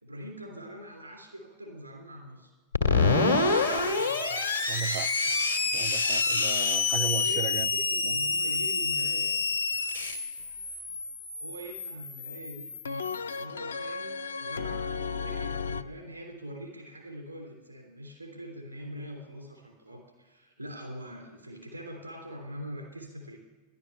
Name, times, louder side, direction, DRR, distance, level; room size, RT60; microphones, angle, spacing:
voice 1, 0.0-2.5 7.1-9.3 11.4-12.7 13.2-23.4, equal, 90° right, 3.2 m, -43 dB
Screech, 2.7-13.2, left 4 dB, 85° left, 1.6 m, -27 dB
voice 2, 4.7-5.1 5.7-7.7 8.0-8.1, right 12 dB, 45° right, 0.4 m, -35 dB
sound 1, 12.8-15.8, left 5 dB, 70° left, 0.4 m, -34 dB
13.5 x 11.0 x 6.7 m
figure-of-eight pair, 90°, 0 cm